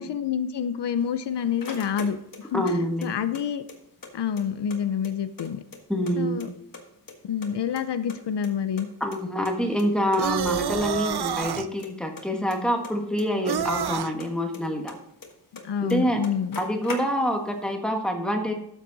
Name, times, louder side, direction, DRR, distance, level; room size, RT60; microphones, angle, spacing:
voice 1, 0.0-2.2 2.5-2.6 3.0-3.6 4.1-5.6 6.2-6.5 7.2-8.9 15.6-16.6, left 8 dB, 75° left, 11 dB, 0.7 m, -27 dB
sound 1, 1.0-2.7 3.0-4.1 4.4-4.5 4.7-6.1 6.4-7.1 7.4-8.9 9.1-9.2 9.5-9.6 9.8-9.9 10.1-10.5 10.8-11.2 11.5-13.9 14.2-15.6 15.9-16.0 16.2-17.5, left 4 dB, 50° left, 1.7 m, -41 dB
voice 2, 2.5-3.1 5.9-6.4 9.0-14.9 15.8-16.2 16.6-18.5, equal, ahead, 2 dB, 1.5 m, -26 dB
sound 2, 10.2-11.7 13.5-14.1, right 8 dB, 65° right, 0.7 m, -28 dB
12.5 x 7.4 x 4.0 m, 0.77 s
wide cardioid pair, 175°, 42 cm